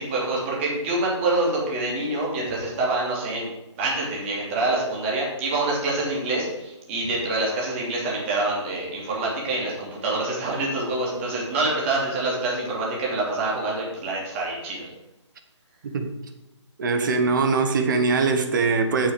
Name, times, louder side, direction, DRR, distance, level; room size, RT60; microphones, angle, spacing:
voice 1, 0.0-3.5 3.8-14.9, right 2 dB, 25° right, 3.0 m, -26 dB
voice 2, 16.8-19.1, right 4 dB, 40° right, 1.4 m, -22 dB
8.6 x 7.2 x 5.3 m
figure-of-eight pair, 150°, 16 cm